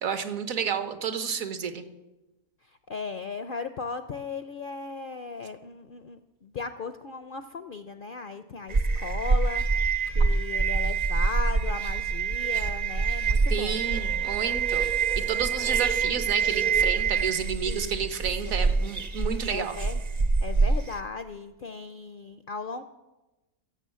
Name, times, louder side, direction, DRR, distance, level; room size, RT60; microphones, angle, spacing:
voice 1, 0.0-1.9 13.5-19.8, right 7 dB, 70° right, 10 dB, 1.4 m, -31 dB
voice 2, 2.6-13.8 17.6-18.1 18.4-18.6 19.5-20.0 20.4-22.8, left 4 dB, 60° left, 10 dB, 0.5 m, -37 dB
sound 1, 8.7-21.0, right 5 dB, 40° right, 0.6 m, -26 dB
16.0 x 7.1 x 7.4 m, 1.1 s
omnidirectional pair, 1.5 m